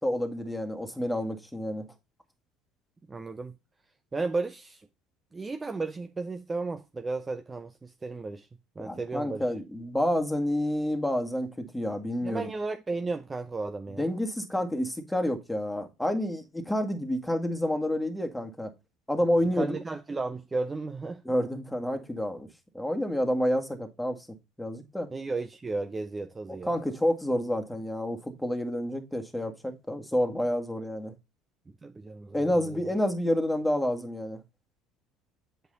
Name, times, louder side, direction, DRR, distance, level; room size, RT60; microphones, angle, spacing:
voice 1, 0.0-1.9 8.8-12.5 14.0-18.7 19.1-19.8 21.3-22.5 22.7-24.3 24.6-25.1 26.6-31.1 32.3-34.4, left 1 dB, 5° left, 1.9 m, -29 dB
voice 2, 3.1-3.6 4.1-4.9 5.3-8.5 8.8-9.4 12.2-14.0 19.5-21.2 25.1-26.8 31.8-32.4 32.7-32.8, right 3 dB, 25° right, 0.6 m, -34 dB
8.1 x 5.0 x 3.9 m
hypercardioid pair, 70°, 0 cm